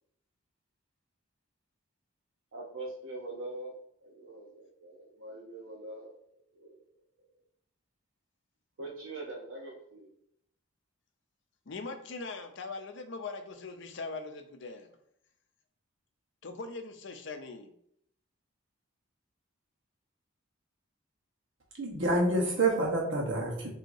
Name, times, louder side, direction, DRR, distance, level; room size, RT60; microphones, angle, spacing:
voice 1, 2.5-6.8 8.8-10.1, right 2 dB, 85° right, 0.8 m, -43 dB
voice 2, 11.7-14.9 16.4-17.7, left 3 dB, 60° left, 0.5 m, -41 dB
voice 3, 21.8-23.7, right 2 dB, 60° right, 1.1 m, -28 dB
5.8 x 2.8 x 2.6 m
head